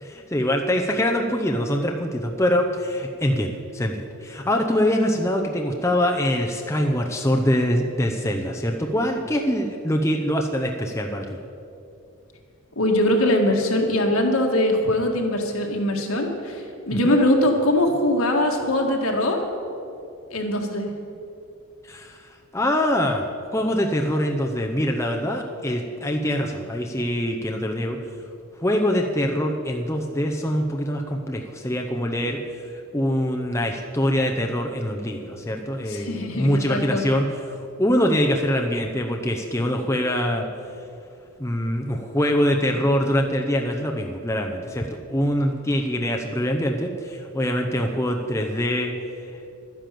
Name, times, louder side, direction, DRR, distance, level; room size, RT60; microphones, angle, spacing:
voice 1, 0.0-11.3 17.0-17.2 21.8-23.3 23.5-28.0 28.6-40.5 41.4-48.9, equal, 10° left, 2 dB, 0.7 m, -24 dB
voice 2, 12.8-19.4 20.3-20.9 35.9-37.0, left 1 dB, 70° left, 2 dB, 2.0 m, -22 dB
12.0 x 10.0 x 7.7 m, 2.7 s
head